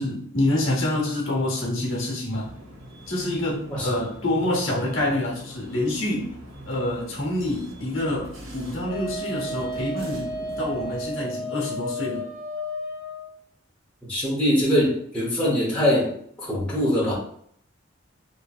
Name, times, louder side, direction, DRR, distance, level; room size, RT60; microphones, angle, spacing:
voice 1, 0.0-2.5 3.1-6.3 6.7-12.3, left 1 dB, 75° left, -1 dB, 0.9 m, -27 dB
sound 1, 2.3-11.2, equal, 80° right, 1.0 m, -42 dB
Wind instrument woodwind instrument, 8.9-13.3, equal, 15° right, 1.3 m, -33 dB
voice 2, 14.1-17.1, equal, 5° left, -8 dB, 0.8 m, -23 dB
2.8 x 2.6 x 2.3 m, 0.65 s
head